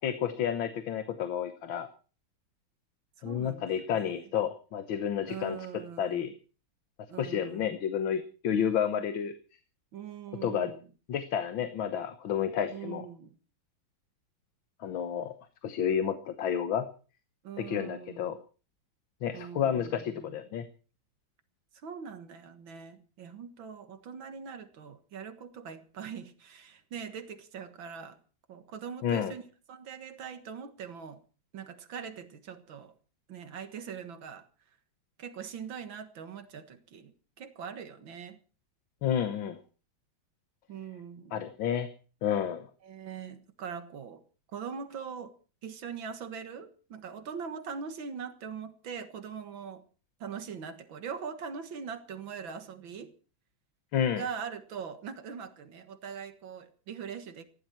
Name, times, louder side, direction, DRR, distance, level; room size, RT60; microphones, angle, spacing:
voice 1, 0.0-1.9 3.2-6.3 7.2-9.3 10.4-10.7 11.1-13.1 14.8-15.4 15.6-16.9 17.6-18.4 19.2-20.6 29.0-29.3 39.0-39.6 41.3-41.9 42.2-42.7 53.9-54.2, left 8 dB, 90° left, 10 dB, 1.9 m, -30 dB
voice 2, 3.2-4.2 5.3-6.3 7.1-7.7 9.9-10.9 12.7-13.3 17.4-18.4 19.3-20.4 21.8-28.2 28.5-31.2 31.5-32.9 33.3-34.4 35.2-38.4 40.7-41.4 42.8-44.2 44.5-45.3 45.6-49.8 50.2-53.1 54.2-57.4, right 6 dB, 80° right, 9 dB, 2.4 m, -42 dB
19.5 x 15.0 x 4.5 m, 0.38 s
omnidirectional pair, 2.1 m